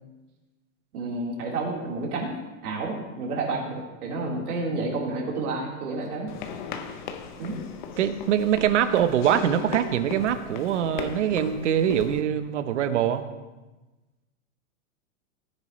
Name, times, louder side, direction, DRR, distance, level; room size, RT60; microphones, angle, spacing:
voice 1, 0.9-2.3 2.6-6.3 7.4-7.6, right 3 dB, 90° right, -3 dB, 3.9 m, -30 dB
sound 1, 6.3-12.2, left 6 dB, 35° left, 0.7 m, -37 dB
voice 2, 8.0-13.2, right 9 dB, 55° right, 11 dB, 0.9 m, -23 dB
18.0 x 9.8 x 3.1 m, 1.1 s
supercardioid pair, 180°, 44 cm